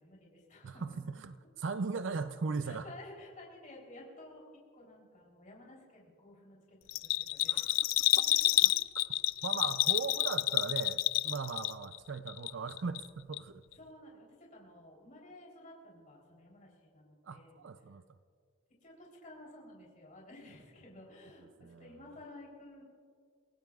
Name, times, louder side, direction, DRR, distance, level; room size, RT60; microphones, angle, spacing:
voice 1, 0.0-1.0 2.6-6.8 7.0-7.7 8.1-8.3 13.8-17.6 18.8-21.5 21.8-22.8, left 1 dB, 40° left, -3 dB, 3.5 m, -53 dB
voice 2, 0.6-2.9 7.5-7.7 8.6-8.7 9.4-13.6 17.2-18.0 21.6-22.2, right 4 dB, 70° right, 11 dB, 0.5 m, -38 dB
Bell, 6.9-12.0 12.3-13.1 13.3-13.4, left 16 dB, 90° left, 0.4 m, -29 dB
28.5 x 17.0 x 2.4 m, 2.1 s
head